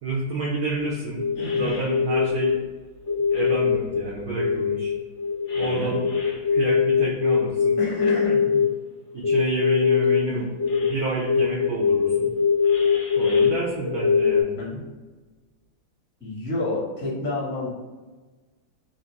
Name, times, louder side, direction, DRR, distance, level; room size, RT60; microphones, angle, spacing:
voice 1, 0.0-1.3 1.6-2.6 3.3-4.9 5.5-6.0 6.5-7.8 9.1-10.5 10.7-12.3 13.2-14.6, right 3 dB, 70° right, -4 dB, 0.8 m, -29 dB
sound 1, 0.7-0.9 1.2-2.6 3.1-4.0 4.4-8.7 9.2-10.2 10.6-11.0 11.3-14.4, left 6 dB, 70° left, 0.6 m, -22 dB
voice 2, 1.4-1.8 5.6-5.9 7.8-8.6 10.3-10.4 14.6-14.8 16.2-17.7, left 2 dB, 10° left, -6 dB, 0.5 m, -30 dB
3.7 x 2.6 x 3.4 m, 1.3 s
omnidirectional pair, 2.3 m